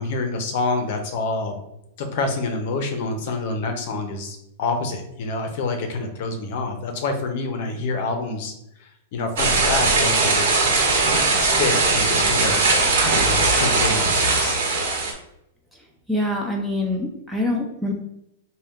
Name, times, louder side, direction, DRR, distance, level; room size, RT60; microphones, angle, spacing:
voice 1, 0.0-1.6 2.0-8.5 8.8-10.6 11.4-12.7 13.1-14.6, left 3 dB, 45° left, 5 dB, 0.7 m, -27 dB
sound 1, 9.4-15.1, right 3 dB, 60° right, 1.1 m, -19 dB
voice 2, 16.1-17.9, left 1 dB, ahead, -1 dB, 0.3 m, -25 dB
4.2 x 2.2 x 3.5 m, 0.80 s
supercardioid pair, 175°, 0 cm